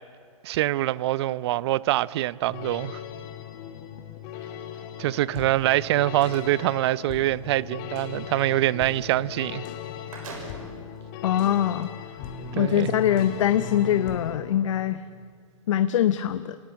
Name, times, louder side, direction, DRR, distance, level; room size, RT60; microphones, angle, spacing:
voice 1, 0.4-3.0 5.0-9.6 12.5-12.9, right 15 dB, 50° right, 0.6 m, -24 dB
sound 1, 2.5-14.4, left 7 dB, 40° left, 2.4 m, -38 dB
sound 2, 5.6-6.5 9.4-9.5 9.8-10.9 11.6-11.7 12.6-12.8, right 3 dB, 80° right, 6.4 m, -42 dB
voice 2, 11.2-11.9 12.5-15.0 15.7-16.6, left 11 dB, 65° left, 0.9 m, -23 dB
27.0 x 19.0 x 8.8 m
hypercardioid pair, 130°, 18 cm